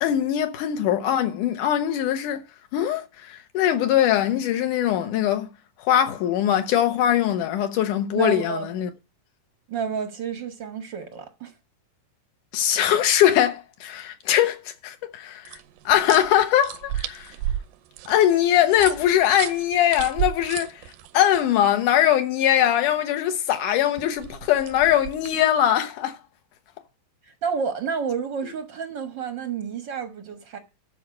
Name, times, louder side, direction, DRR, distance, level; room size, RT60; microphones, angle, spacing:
voice 1, 0.0-2.4 2.7-5.5 5.8-8.9 12.5-15.6 15.9-17.3 18.1-20.8 21.1-26.2, left 11 dB, 70° left, 2.4 m, -21 dB
voice 2, 8.1-8.7 9.7-11.5 27.2-30.6, right 6 dB, 60° right, 1.1 m, -30 dB
sound 1, 15.5-21.4 24.0-25.5, right 12 dB, 85° right, 2.5 m, -33 dB
12.0 x 4.7 x 7.6 m
omnidirectional pair, 4.0 m